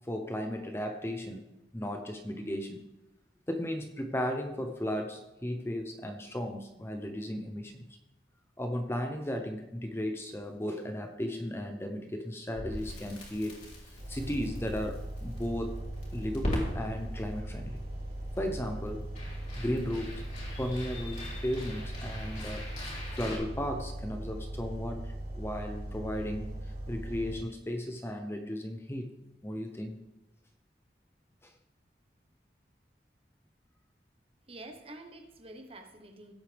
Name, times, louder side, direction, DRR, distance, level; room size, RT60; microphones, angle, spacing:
voice 1, 0.0-1.4 1.7-2.8 3.5-8.0 8.6-17.8 18.4-19.1 19.6-20.3 20.6-22.7 23.1-29.1 29.4-30.0 31.4-31.5, equal, 15° left, 5 dB, 0.7 m, -35 dB
Crackle, 12.5-23.4, equal, 40° left, 3.2 m, -41 dB
sound 1, 14.0-27.4, right 1 dB, 50° right, 4.7 m, -39 dB
voice 2, 34.5-36.3, right 2 dB, 30° right, 5 dB, 1.1 m, -48 dB
16.5 x 8.0 x 3.4 m, 0.99 s
head